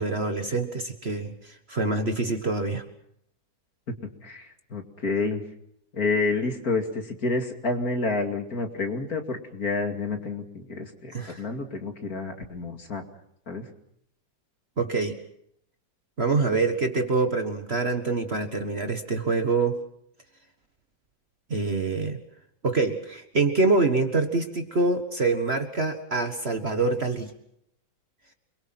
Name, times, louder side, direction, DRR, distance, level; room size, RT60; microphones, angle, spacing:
voice 1, 0.0-2.8 11.1-11.4 14.8-15.2 16.2-19.8 21.5-22.2 22.6-27.3, right 3 dB, 35° right, 6 dB, 1.6 m, -25 dB
voice 2, 4.2-5.4 5.9-13.0 13.5-13.7, left 3 dB, 50° left, 4 dB, 2.9 m, -29 dB
28.5 x 22.5 x 6.0 m, 0.74 s
omnidirectional pair, 2.1 m